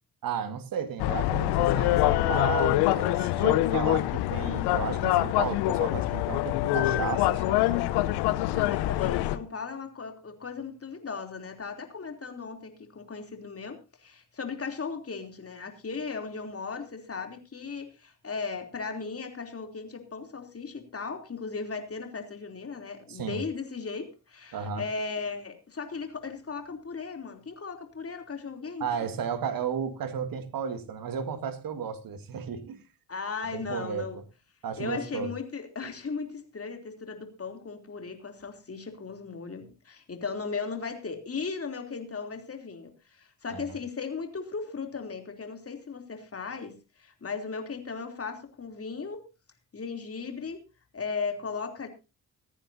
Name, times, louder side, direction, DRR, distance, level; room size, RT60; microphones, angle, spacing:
voice 1, 0.2-7.6 23.1-23.4 24.5-24.8 28.8-32.8 33.5-34.1 34.6-35.3 43.5-43.7, right 7 dB, 50° right, 1.9 m, -33 dB
sound 1, 1.0-9.4, left 16 dB, 65° left, 1.0 m, -25 dB
voice 2, 8.5-28.8 33.1-34.2 34.8-49.2 49.7-50.6 50.9-51.9, left 5 dB, 35° left, 3.3 m, -37 dB
25.0 x 9.9 x 2.8 m
figure-of-eight pair, 45°, 42 cm